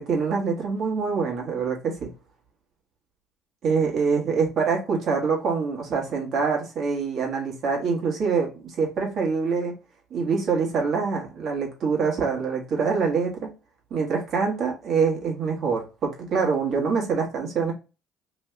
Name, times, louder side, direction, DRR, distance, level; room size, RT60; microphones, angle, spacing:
voice 1, 0.0-2.1 3.6-9.7 10.1-13.3 13.9-17.7, right 5 dB, 55° right, 1.4 m, -25 dB
3.1 x 2.7 x 3.3 m
hypercardioid pair, 65°, 0 cm